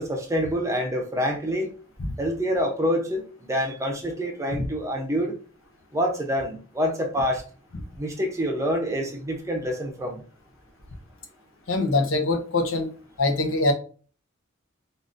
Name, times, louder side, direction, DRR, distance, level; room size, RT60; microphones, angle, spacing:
voice 1, 0.0-1.7 2.2-5.3 5.9-7.4 8.0-10.2, equal, 15° right, 0.6 m, -26 dB
voice 2, 11.7-12.9 13.2-13.7, left 2 dB, 75° left, 0.7 m, -23 dB
3.7 x 2.5 x 2.5 m
head